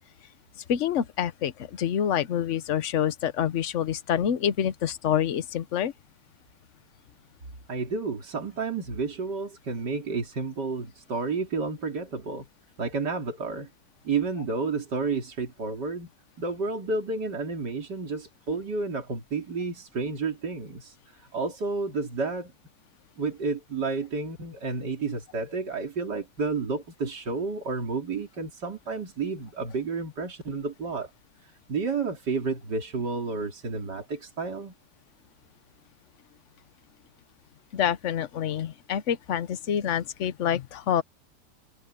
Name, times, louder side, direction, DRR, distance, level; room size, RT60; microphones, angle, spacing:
voice 1, 0.7-5.9 37.7-41.0, left 9 dB, 50° left, 1.1 m, -27 dB
voice 2, 7.7-12.5 12.8-13.7 14.0-16.1 16.4-22.5 23.2-31.1 31.4-34.7, right 4 dB, 75° right, 3.8 m, -31 dB
omnidirectional pair, 1.8 m